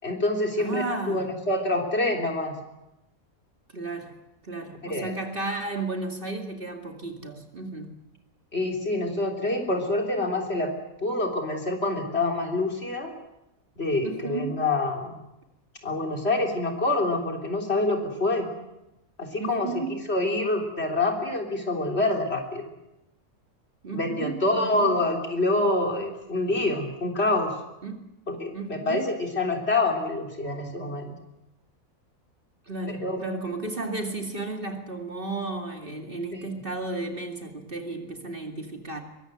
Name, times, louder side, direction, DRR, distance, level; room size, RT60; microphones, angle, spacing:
voice 1, 0.0-2.5 4.9-5.1 8.5-10.7 11.0-13.1 13.8-15.2 15.8-18.5 19.2-19.7 20.1-22.7 23.9-27.5 28.3-31.1 33.0-33.2 36.3-36.5, left 2 dB, 45° left, 2 dB, 4.0 m, -26 dB
voice 2, 0.6-1.3 3.7-4.2 4.4-8.0 14.0-14.6 19.4-20.1 23.8-25.0 27.8-28.0 28.5-29.1 32.7-39.0, right 3 dB, 40° right, 3 dB, 2.6 m, -33 dB
23.0 x 22.0 x 7.9 m, 0.92 s
omnidirectional pair, 1.5 m